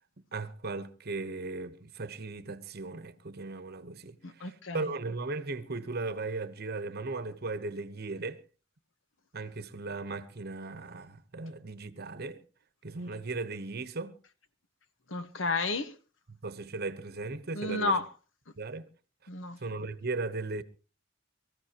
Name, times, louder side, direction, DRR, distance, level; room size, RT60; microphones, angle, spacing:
voice 1, 0.3-8.4 9.3-12.4 12.8-14.1 16.3-18.0 18.6-18.9 19.6-20.6, right 3 dB, 55° right, 1.0 m, -37 dB
voice 2, 4.2-4.9 15.1-15.9 17.5-18.1 19.3-19.6, left 3 dB, 70° left, 1.3 m, -31 dB
24.0 x 14.0 x 2.9 m
head